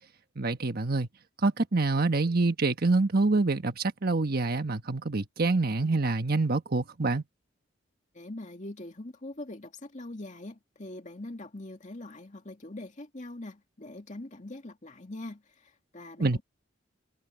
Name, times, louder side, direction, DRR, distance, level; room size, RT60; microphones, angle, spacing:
voice 1, 0.4-1.1 1.4-7.2 16.2-16.4, right 3 dB, 50° right, 1.3 m, -26 dB
voice 2, 8.1-16.4, left 1 dB, 40° left, 2.4 m, -43 dB
head